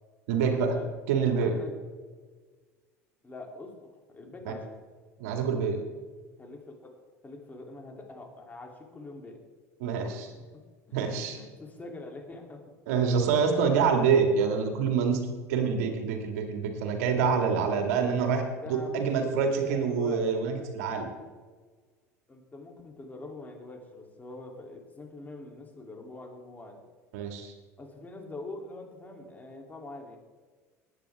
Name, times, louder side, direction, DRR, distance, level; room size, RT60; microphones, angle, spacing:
voice 1, 0.3-0.8 1.1-1.5 4.5-4.6 5.2-5.8 9.8-10.3 10.9-11.4 12.9-18.4 18.7-21.1 27.1-27.5, right 6 dB, 70° right, 4 dB, 2.3 m, -26 dB
voice 2, 1.4-1.7 3.2-4.7 6.4-6.9 7.2-9.4 10.9-11.0 11.3-12.6 18.2-19.1 19.3-20.4 22.3-26.8 27.8-30.2, left 2 dB, 20° left, 1 dB, 3.4 m, -44 dB
20.0 x 9.4 x 3.7 m, 1.4 s
hypercardioid pair, 70°, 8 cm